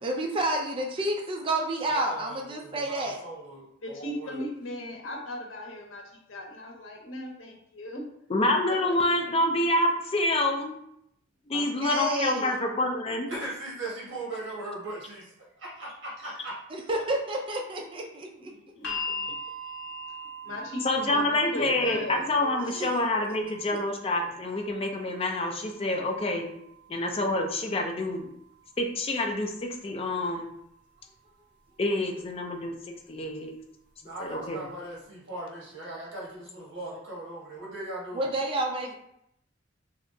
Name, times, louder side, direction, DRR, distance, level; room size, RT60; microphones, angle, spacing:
voice 1, 0.0-3.2 11.5-12.6 16.7-18.5 22.7-22.9 38.1-38.9, right 1 dB, 25° right, 1 dB, 0.4 m, -30 dB
voice 2, 1.9-4.4 13.3-16.6 34.0-38.3, right 2 dB, 65° right, -5 dB, 1.3 m, -39 dB
voice 3, 3.8-6.0 6.3-8.0 18.8-19.3 20.4-22.3, left 1 dB, 85° left, 1 dB, 0.8 m, -37 dB
voice 4, 8.3-10.7 11.5-13.3 20.8-26.5 26.9-28.3 28.8-30.5 31.8-32.8 33.1-33.5 34.2-34.7, left 1 dB, 30° left, 3 dB, 0.5 m, -27 dB
sound 1, 18.8-30.9 32.0-32.1, left 1 dB, 60° left, 1.2 m, -42 dB
3.3 x 2.8 x 2.7 m, 0.75 s
head